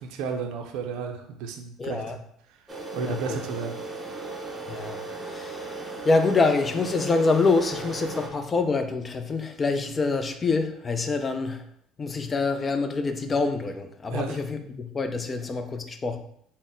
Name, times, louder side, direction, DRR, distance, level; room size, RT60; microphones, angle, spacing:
voice 1, 0.0-2.0 2.9-3.8 14.1-14.4, right 6 dB, 75° right, 4 dB, 0.4 m, -32 dB
voice 2, 1.8-2.2 3.0-3.4 4.7-11.6 12.0-16.2, left 3 dB, 30° left, 7 dB, 0.4 m, -26 dB
sound 1, 2.7-8.3, right 3 dB, 20° right, 0.7 m, -36 dB
3.9 x 2.0 x 3.8 m, 0.67 s
supercardioid pair, 90°, 0 cm